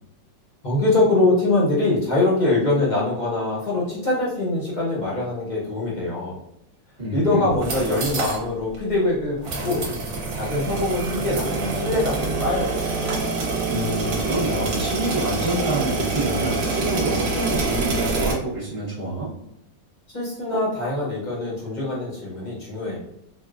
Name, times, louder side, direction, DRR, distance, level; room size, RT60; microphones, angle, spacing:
voice 1, 0.6-6.4 7.1-9.8 10.3-12.8 20.1-23.0, left 2 dB, 50° left, -6 dB, 0.5 m, -23 dB
voice 2, 7.0-7.5 13.7-19.3, right 1 dB, 35° right, -9 dB, 1.0 m, -27 dB
sound 1, 7.5-8.4 8.7-8.8 9.4-18.3, right 3 dB, 60° right, 1.0 m, -26 dB
4.1 x 2.2 x 2.4 m, 0.81 s
omnidirectional pair, 1.9 m